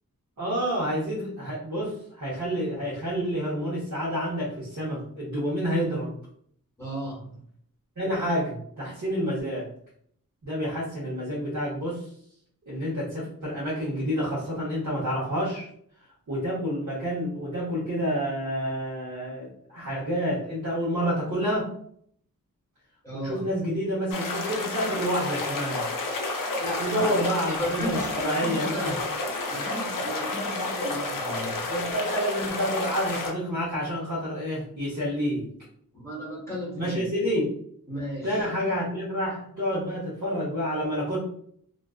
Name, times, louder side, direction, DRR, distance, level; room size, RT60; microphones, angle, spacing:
voice 1, 0.4-6.1 8.0-9.7 10.4-12.1 12.7-15.7 16.3-21.7 23.1-25.9 26.8-28.9 31.6-35.5 36.7-37.6 38.2-41.2, equal, 55° right, -8 dB, 1.0 m, -29 dB
voice 2, 6.8-7.4 23.0-23.5 26.6-28.8 29.5-31.7 35.9-37.0 37.9-38.4, equal, 10° left, -7 dB, 0.9 m, -35 dB
sound 1, 24.1-33.3, left 2 dB, 70° left, 0.5 m, -30 dB
2.4 x 2.3 x 2.3 m, 0.65 s
wide cardioid pair, 80°, 34 cm